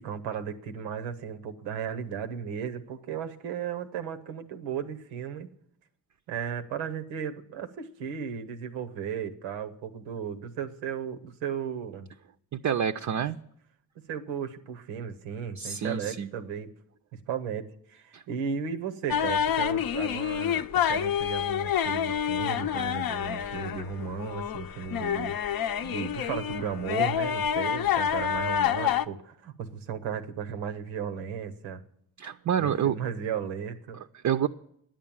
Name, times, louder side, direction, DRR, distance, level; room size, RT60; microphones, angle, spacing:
voice 1, 0.0-5.5 6.3-12.1 14.1-16.7 17.3-25.4 25.8-31.8 32.6-34.0, right 7 dB, 90° right, 9 dB, 0.9 m, -35 dB
voice 2, 12.5-13.4 15.6-16.3 18.1-18.2 32.2-33.0 34.1-34.5, right 8 dB, 40° right, 9 dB, 0.5 m, -28 dB
sound 1, 19.1-29.0, left 9 dB, 50° left, 0.6 m, -28 dB
10.0 x 7.5 x 8.6 m, 0.71 s
hypercardioid pair, 45°, 44 cm